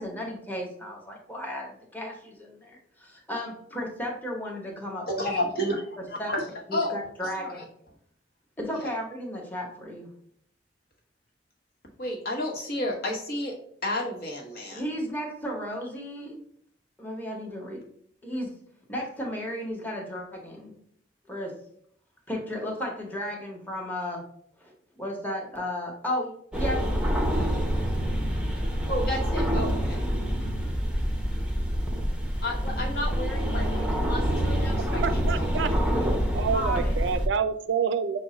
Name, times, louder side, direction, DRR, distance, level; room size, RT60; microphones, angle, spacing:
voice 1, 0.0-5.3 6.0-6.3 6.7-7.7 8.6-10.1 14.7-16.3 17.0-17.8 18.2-18.5 18.9-20.8 21.3-21.5 22.3-24.2 24.6-24.7 25.0-26.8 36.5-36.9, equal, 10° left, -1 dB, 1.0 m, -34 dB
voice 2, 5.1-6.4 6.7-7.0 7.3-7.6 8.7-8.9 12.0-13.6 13.8-14.8 28.9-29.8 32.4-35.8, left 1 dB, 55° left, -1 dB, 1.0 m, -31 dB
sound 1, 26.5-37.3, equal, 5° right, 0.6 m, -26 dB
voice 3, 34.9-35.7 36.3-38.2, right 6 dB, 80° right, 10 dB, 0.4 m, -27 dB
6.1 x 2.1 x 3.8 m, 0.67 s
head